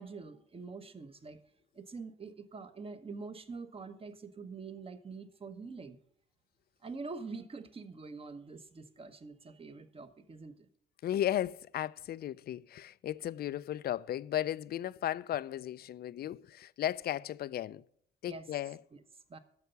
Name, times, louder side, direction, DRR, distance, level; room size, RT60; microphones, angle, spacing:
voice 1, 0.0-1.4 1.7-6.0 6.8-10.7 18.3-18.5 18.9-19.0 19.3-19.4, right 4 dB, 30° right, 1.1 m, -45 dB
voice 2, 11.0-17.8 18.2-18.8, left 12 dB, 55° left, 0.4 m, -35 dB
9.6 x 6.8 x 6.8 m
cardioid pair, 95°, 19 cm